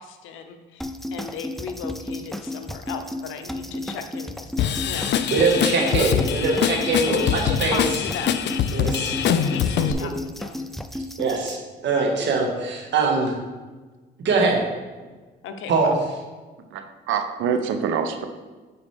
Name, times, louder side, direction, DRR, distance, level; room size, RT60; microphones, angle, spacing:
voice 1, 0.0-4.5 4.8-6.2 7.0-8.6 9.4-10.6 15.4-16.0, left 6 dB, 85° left, 7 dB, 0.8 m, -36 dB
sound 1, 0.8-11.6, left 1 dB, ahead, 0.4 m, -33 dB
Drum kit / Drum, 4.6-9.9, left 9 dB, 60° left, 0.4 m, -24 dB
voice 2, 5.3-7.8 8.7-9.1 9.8-9.9 11.2-11.6 11.8-13.3 14.2-14.6 15.7-16.0, right 3 dB, 65° right, 0 dB, 1.7 m, -22 dB
voice 3, 16.7-18.2, right 7 dB, 85° right, 7 dB, 0.7 m, -25 dB
8.5 x 5.1 x 3.5 m, 1.3 s
cardioid pair, 90°, 20 cm